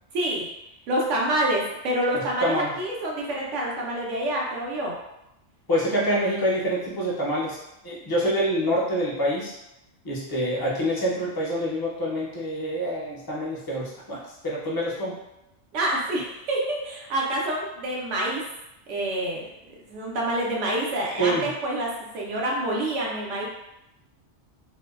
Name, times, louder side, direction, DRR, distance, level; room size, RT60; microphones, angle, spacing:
voice 1, 0.1-0.5 0.9-4.9 15.7-18.4 18.9-19.5 19.8-23.5, right 1 dB, 85° right, -2 dB, 1.0 m, -27 dB
voice 2, 2.4-2.7 5.7-7.6 7.8-9.5 10.0-15.2 21.2-21.5, equal, 30° left, -6 dB, 0.4 m, -26 dB
2.6 x 2.2 x 2.3 m, 0.89 s
omnidirectional pair, 1.2 m